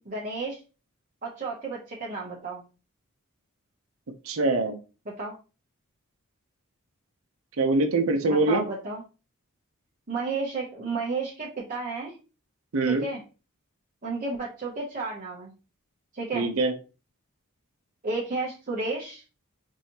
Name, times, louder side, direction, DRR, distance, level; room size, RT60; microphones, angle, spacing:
voice 1, 0.1-0.6 1.2-2.6 5.2-5.3 8.2-9.0 10.1-12.1 12.9-13.2 14.0-15.5 16.1-16.5 18.0-19.2, right 3 dB, 35° right, -4 dB, 0.8 m, -32 dB
voice 2, 4.2-4.8 7.6-8.6 12.7-13.0 16.3-16.7, right 2 dB, 70° right, 5 dB, 0.6 m, -23 dB
4.9 x 2.7 x 2.8 m, 0.33 s
head